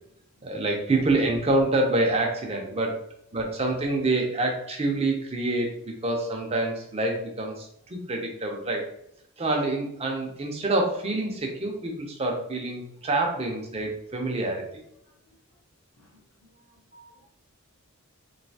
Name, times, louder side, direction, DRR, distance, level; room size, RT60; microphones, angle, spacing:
voice 1, 0.4-3.0 3.3-8.9 9.4-14.8 16.9-17.1, right 2 dB, 25° right, 1 dB, 0.5 m, -27 dB
voice 2, 16.5-16.8 17.2-17.3, equal, 65° left, -4 dB, 0.7 m, -61 dB
3.1 x 2.6 x 2.7 m, 0.75 s
head